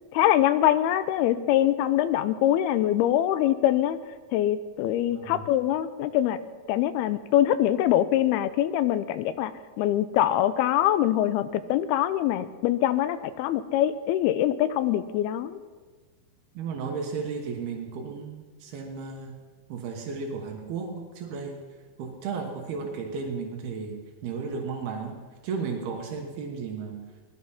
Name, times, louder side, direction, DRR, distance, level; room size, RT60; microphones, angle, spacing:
voice 1, 0.1-4.0 4.3-6.4 6.7-9.5 9.8-15.6, left 12 dB, 90° left, 14 dB, 2.6 m, -24 dB
voice 2, 5.1-5.5 16.5-19.3 19.7-21.6 22.0-25.2 25.4-27.0, right 5 dB, 80° right, 2 dB, 3.3 m, -34 dB
18.0 x 12.0 x 5.7 m, 1.4 s
omnidirectional pair, 4.4 m